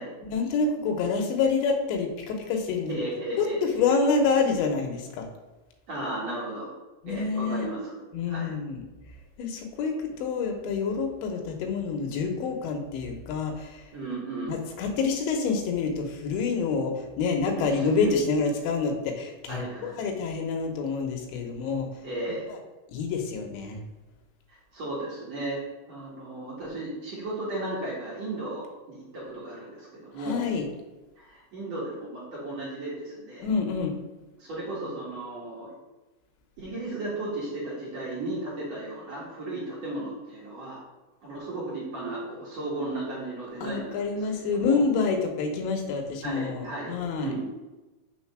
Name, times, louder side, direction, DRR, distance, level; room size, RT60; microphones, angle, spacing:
voice 1, 0.2-3.0 3.4-5.3 7.0-7.7 8.1-8.8 9.4-13.9 14.5-21.9 22.5-22.6 22.9-23.8 30.2-30.7 33.4-34.0 43.6-47.3, left 4 dB, 80° left, 3 dB, 3.0 m, -27 dB
voice 2, 2.9-3.8 5.9-6.7 7.1-8.5 13.9-14.6 17.6-18.1 19.5-20.0 22.0-22.4 24.7-25.6 25.9-30.5 31.2-33.5 34.4-35.7 36.6-40.8 41.2-43.9 44.3-44.8 46.2-47.5, right 2 dB, 55° right, -7 dB, 2.0 m, -35 dB
6.5 x 3.9 x 6.0 m, 1.1 s
omnidirectional pair, 5.3 m